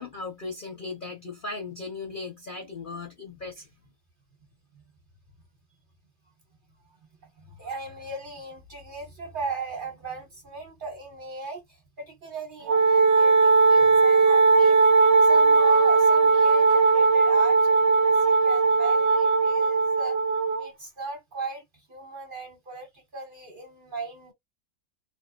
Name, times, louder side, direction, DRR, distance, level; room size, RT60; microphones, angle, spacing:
voice 1, 0.0-3.7, left 3 dB, 50° left, 0.7 m, -37 dB
voice 2, 7.4-11.6 12.0-14.8 15.2-20.2 20.6-21.6 21.9-24.3, right 3 dB, 40° right, 1.1 m, -38 dB
Wind instrument woodwind instrument, 12.7-20.7, right 4 dB, 55° right, 0.8 m, -19 dB
2.6 x 2.3 x 2.3 m
omnidirectional pair, 1.6 m